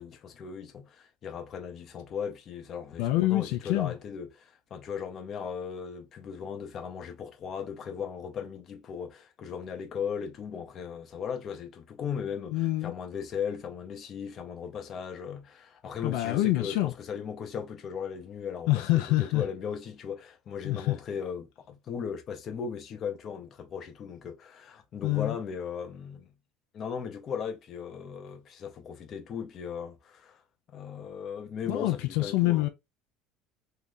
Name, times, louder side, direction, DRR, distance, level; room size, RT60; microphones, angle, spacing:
voice 1, 0.0-26.3 26.7-30.4 30.7-32.7, left 7 dB, 35° left, 0.7 m, -37 dB
voice 2, 3.0-3.9 12.5-12.9 16.0-16.9 18.7-19.4 20.6-20.9 25.0-25.4 31.7-32.7, left 17 dB, 75° left, 0.4 m, -26 dB
2.8 x 2.4 x 3.5 m
cardioid pair, 145°, 0 cm